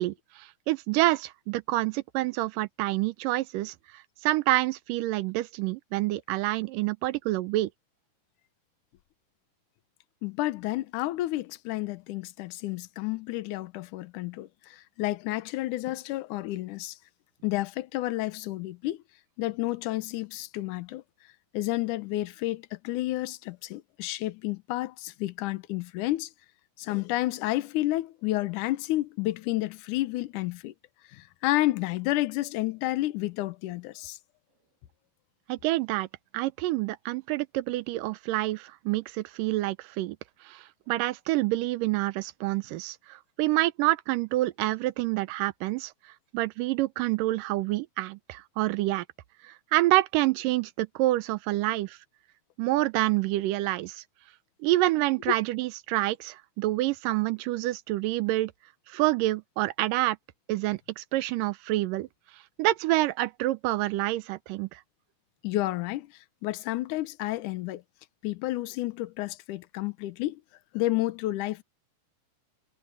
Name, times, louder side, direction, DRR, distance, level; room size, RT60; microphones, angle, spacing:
voice 1, 0.0-3.7 4.2-7.7 35.5-36.1 36.3-40.2 40.4-45.9 46.3-49.1 49.4-52.0 52.6-54.0 54.6-58.5 58.9-60.2 60.5-62.1 62.6-64.8, right 17 dB, 80° right, 2.3 m, -27 dB
voice 2, 10.2-17.0 17.4-19.0 19.4-21.0 21.5-26.3 26.8-30.7 31.1-34.2 55.3-55.4 65.4-66.1 66.4-67.8 68.2-70.4 70.7-71.6, left 17 dB, 70° left, 2.2 m, -30 dB
omnidirectional pair, 4.0 m